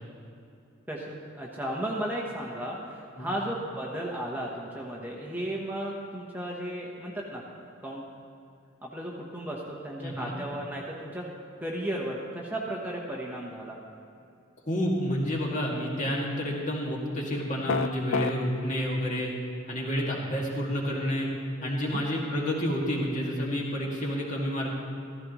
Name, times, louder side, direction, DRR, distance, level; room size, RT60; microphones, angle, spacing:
voice 1, 0.9-7.4 7.8-8.0 8.8-11.3 11.6-13.8 21.6-22.0, right 1 dB, 10° right, -3 dB, 1.0 m, -35 dB
voice 2, 10.0-10.4 14.7-19.3 19.7-21.3 21.6-24.7, equal, 35° left, -3 dB, 2.0 m, -29 dB
sound 1, 17.7-18.3, left 4 dB, 65° left, 0.4 m, -26 dB
14.5 x 14.5 x 3.1 m, 2.6 s
head